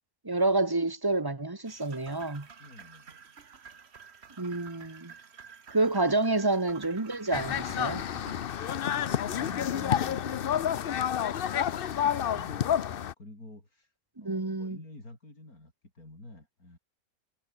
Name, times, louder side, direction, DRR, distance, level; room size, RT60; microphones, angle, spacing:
voice 1, 0.2-2.5 4.4-5.1 5.7-8.0 14.2-14.8, right 2 dB, 15° right, 1.2 m, -28 dB
sound 1, 1.7-8.4, right 6 dB, 45° right, 1.5 m, -50 dB
voice 2, 2.6-3.2 7.2-7.3 8.8-16.8, left 2 dB, 75° left, 7.5 m, -49 dB
sound 2, 7.3-13.1, left 9 dB, 55° left, 0.7 m, -29 dB
omnidirectional pair, 1.5 m